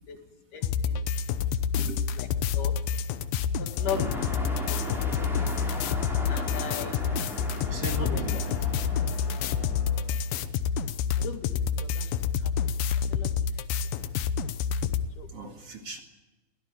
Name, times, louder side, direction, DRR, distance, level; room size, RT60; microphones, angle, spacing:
voice 1, 0.5-1.1 2.2-2.3 2.5-2.8 3.6-4.0 4.7-5.2 6.3-7.1 8.0-8.2 9.3-9.4 11.2-12.5 13.1-13.8 15.2-15.3, left 8 dB, 65° left, 5 dB, 3.4 m, -38 dB
sound 1, 0.6-15.1, left 7 dB, 85° left, 2.7 m, -28 dB
sound 2, 3.5-10.4, left 2 dB, 25° left, 4.5 m, -41 dB
sound 3, 3.8-9.2, equal, ahead, 4.9 m, -39 dB
voice 2, 7.7-8.7 15.3-16.0, right 3 dB, 45° right, 4 dB, 2.7 m, -37 dB
23.0 x 16.5 x 9.1 m, 1.1 s
omnidirectional pair, 4.0 m